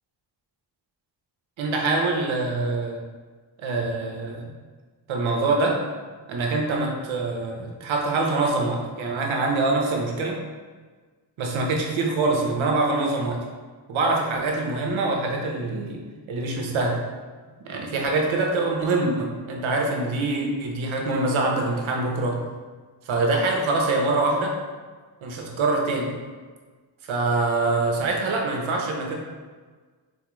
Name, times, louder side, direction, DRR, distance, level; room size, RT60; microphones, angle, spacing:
voice 1, 1.6-3.0 3.6-4.4 5.1-5.8 6.3-10.4 11.4-13.4 13.9-16.0 16.3-17.0 17.6-22.4 23.1-24.5 25.2-26.1 27.1-29.2, right 3 dB, 75° right, 0 dB, 0.8 m, -24 dB
4.1 x 2.4 x 3.0 m, 1.4 s
cardioid pair, 70°, 48 cm